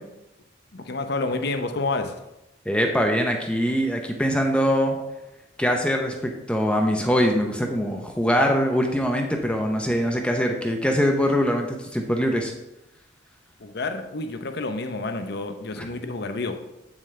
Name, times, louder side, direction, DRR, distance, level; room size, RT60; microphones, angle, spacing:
voice 1, 0.7-2.2 13.6-16.6, left 3 dB, 55° left, 7 dB, 0.8 m, -29 dB
voice 2, 2.7-5.0 5.6-12.5 15.8-15.9, equal, 5° left, 2 dB, 0.7 m, -23 dB
8.2 x 7.3 x 3.3 m, 0.95 s
head